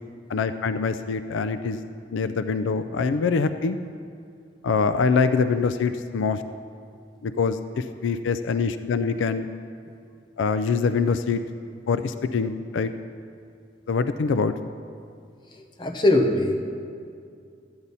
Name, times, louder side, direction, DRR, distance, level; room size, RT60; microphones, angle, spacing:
voice 1, 0.3-1.8 2.1-3.8 4.6-6.4 7.2-9.5 10.4-11.4 11.9-12.9 13.9-14.5, left 5 dB, 85° left, 11 dB, 0.4 m, -24 dB
voice 2, 15.5-16.6, left 1 dB, 25° left, 2 dB, 0.9 m, -22 dB
13.0 x 8.7 x 4.1 m, 2.3 s
head